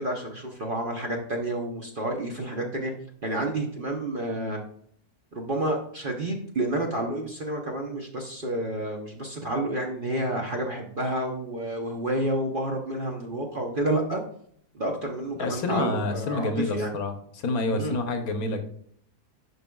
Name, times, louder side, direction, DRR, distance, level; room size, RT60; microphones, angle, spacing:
voice 1, 0.0-2.9 3.2-4.6 5.3-14.2 14.7-16.9 17.8-17.9, right 1 dB, 40° right, 1 dB, 0.8 m, -29 dB
voice 2, 15.4-18.6, left 2 dB, 65° left, 6 dB, 1.3 m, -28 dB
11.0 x 4.9 x 2.3 m, 0.65 s
omnidirectional pair, 1.7 m